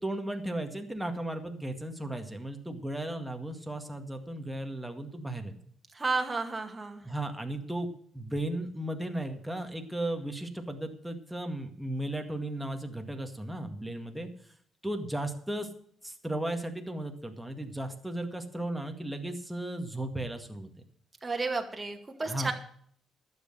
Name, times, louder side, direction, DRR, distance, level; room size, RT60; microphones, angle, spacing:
voice 1, 0.0-5.5 7.0-7.9 8.1-14.3 14.8-15.7 16.0-20.7 22.2-22.5, right 1 dB, 5° right, 4 dB, 1.9 m, -35 dB
voice 2, 5.9-7.0 21.2-22.5, right 3 dB, 20° right, 4 dB, 2.2 m, -32 dB
12.0 x 8.0 x 7.6 m, 0.62 s
cardioid pair, 90°, 0 cm